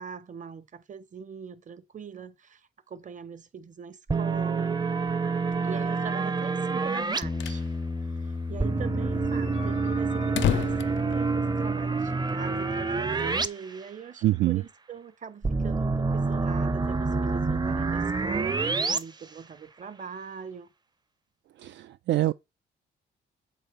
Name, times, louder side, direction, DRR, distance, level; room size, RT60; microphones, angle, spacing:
voice 1, 0.0-4.9 5.6-7.6 8.1-20.7, right 6 dB, 40° right, 1.1 m, -42 dB
sound 1, 4.1-7.2 8.6-13.5 13.8-13.9 15.4-19.0, right 4 dB, 20° right, 0.7 m, -27 dB
sound 2, 7.0-7.7 8.0-8.1 8.3-8.4 8.9-11.9, left 11 dB, 70° left, 0.5 m, -32 dB
Bass guitar, 7.2-13.5, left 3 dB, 10° left, 0.3 m, -36 dB
voice 2, 14.2-14.6 21.6-22.3, right 15 dB, 65° right, 0.4 m, -25 dB
7.8 x 4.2 x 5.1 m
cardioid pair, 90°, 20 cm